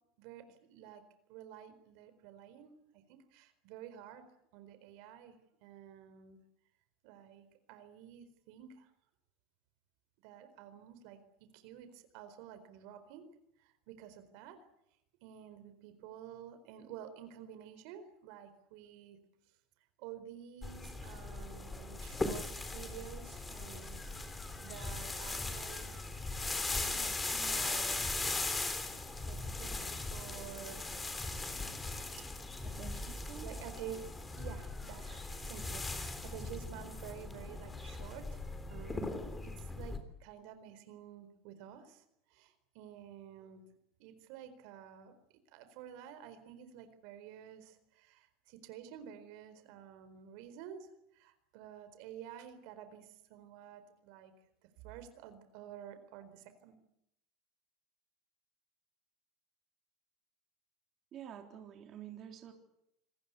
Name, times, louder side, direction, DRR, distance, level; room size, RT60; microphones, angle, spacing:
voice 1, 0.2-1.0 1.3-4.3 4.5-6.4 7.0-8.9 10.2-11.2 11.5-13.3 13.6-14.6 15.2-19.2 20.0-26.2 26.9-28.1 29.2-31.2 32.5-32.7 33.4-34.0 34.4-38.3 38.7-42.0 42.3-43.6 44.0-54.3 54.6-56.7, right 10 dB, 70° right, 10 dB, 4.2 m, -51 dB
sound 1, 20.6-40.0, left 3 dB, 15° left, 3.7 m, -39 dB
voice 2, 32.6-33.5 61.1-62.5, right 9 dB, 40° right, 3 dB, 3.7 m, -49 dB
28.0 x 20.0 x 8.4 m, 0.81 s
supercardioid pair, 125°, 0 cm